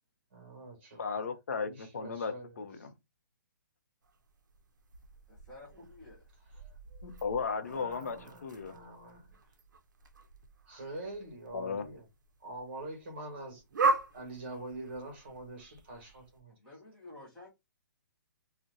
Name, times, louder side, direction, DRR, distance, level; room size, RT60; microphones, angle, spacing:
voice 1, 0.3-1.2 1.6-2.6 6.5-6.6 7.7-9.4 10.7-12.0 12.4-13.6 14.1-16.5, right 2 dB, 35° right, 1.1 m, -45 dB
voice 2, 1.0-2.9 7.0-8.8 11.5-11.9, left 5 dB, 50° left, 0.6 m, -36 dB
sound 1, 4.0-16.4, right 3 dB, 65° right, 0.5 m, -39 dB
voice 3, 5.3-6.2 16.6-17.5, left 2 dB, 5° left, 0.5 m, -51 dB
2.6 x 2.1 x 3.5 m
hypercardioid pair, 180°, 11 cm